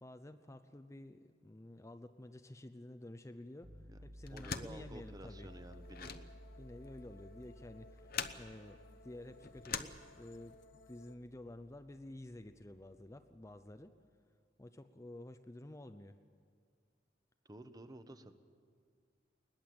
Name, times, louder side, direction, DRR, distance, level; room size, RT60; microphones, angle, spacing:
voice 1, 0.0-5.5 6.6-10.6 10.9-13.9 14.6-16.2, left 1 dB, 15° left, 9 dB, 0.6 m, -51 dB
sound 1, 3.6-13.5, equal, 75° right, 4.9 m, -57 dB
sound 2, 4.2-10.6, left 6 dB, 55° left, 0.9 m, -45 dB
voice 2, 4.3-6.3 17.4-18.3, right 1 dB, 20° right, 9 dB, 1.0 m, -52 dB
sound 3, 5.2-11.2, left 2 dB, 85° left, 1.0 m, -61 dB
20.5 x 19.5 x 7.8 m, 2.1 s
head